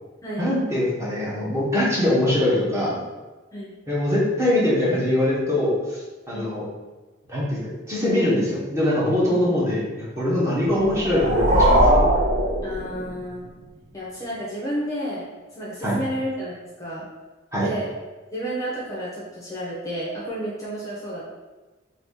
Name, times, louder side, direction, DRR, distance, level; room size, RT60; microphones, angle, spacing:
voice 1, 0.4-3.0 3.9-6.0 6.3-6.6 7.3-7.6 7.9-9.8 10.2-11.9 15.8-16.0 17.5-17.7, left 1 dB, 15° right, -7 dB, 0.9 m, -22 dB
voice 2, 9.2-9.6 12.6-13.5 13.9-15.2 15.5-17.1 17.6-17.9 18.3-21.3, equal, 15° left, -6 dB, 0.7 m, -31 dB
sound 1, 10.8-13.4, right 1 dB, 40° right, 0.6 m, -20 dB
2.8 x 2.6 x 3.7 m, 1.2 s
head